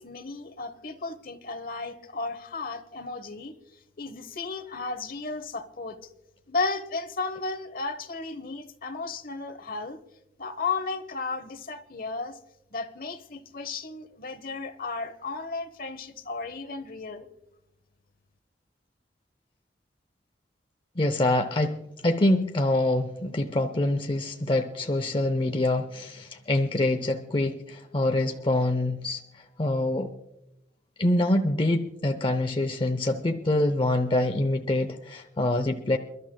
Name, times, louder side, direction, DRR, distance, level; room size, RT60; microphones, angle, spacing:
voice 1, 0.0-3.5 4.0-6.1 6.5-10.0 10.4-12.4 12.7-17.3, left 3 dB, 55° left, 11 dB, 1.0 m, -34 dB
voice 2, 21.0-29.2 29.6-30.1 31.0-36.0, left 1 dB, 30° left, 6 dB, 0.6 m, -25 dB
29.0 x 12.0 x 2.2 m, 0.86 s
head